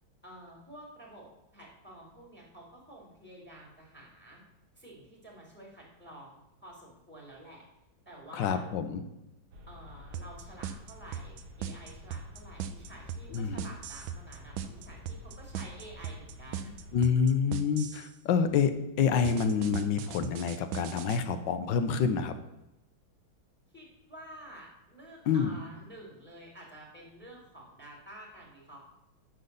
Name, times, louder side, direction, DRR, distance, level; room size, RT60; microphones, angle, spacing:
voice 1, 0.2-1.3 1.5-4.4 4.8-7.6 8.1-8.6 9.7-16.7 23.7-28.9, right 1 dB, 5° left, -2 dB, 2.3 m, -50 dB
voice 2, 8.3-9.0 13.3-13.7 16.9-18.7 19.0-22.3 25.3-25.5, left 6 dB, 70° left, 9 dB, 1.3 m, -27 dB
sound 1, 9.5-17.2, left 1 dB, 55° right, 1.6 m, -50 dB
sound 2, 10.1-18.1 19.2-21.2, right 8 dB, 75° right, 1.4 m, -38 dB
11.0 x 4.0 x 6.6 m, 0.94 s
omnidirectional pair, 2.3 m